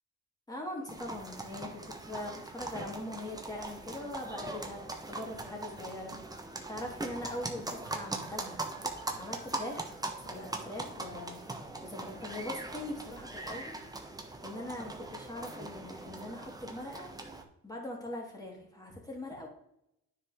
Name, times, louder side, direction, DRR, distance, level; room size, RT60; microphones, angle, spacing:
voice 1, 0.5-6.2 6.7-8.6 9.2-9.9 10.3-11.5 11.8-13.7 14.4-17.1 17.6-19.5, left 1 dB, 10° left, -1 dB, 3.0 m, -41 dB
sound 1, 0.9-17.4, right 2 dB, 10° right, 1.2 m, -41 dB
9.7 x 4.8 x 3.6 m, 0.78 s
cardioid pair, 90°, 30 cm